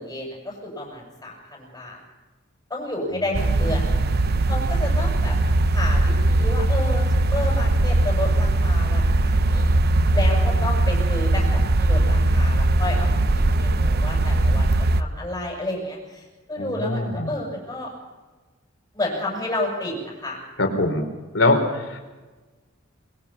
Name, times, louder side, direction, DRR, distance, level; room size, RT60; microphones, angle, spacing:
voice 1, 0.0-2.0 2.7-4.0 4.5-5.4 5.7-9.7 10.1-13.2 13.6-17.9 18.9-20.9, left 1 dB, 15° left, -2 dB, 7.5 m, -31 dB
Night Cars, 3.3-15.0, right 2 dB, 50° right, 0.8 m, -20 dB
voice 2, 3.5-3.8 16.6-17.3 20.6-21.0 21.3-22.0, left 2 dB, 65° left, 3 dB, 4.1 m, -23 dB
22.0 x 22.0 x 5.8 m, 1.3 s
head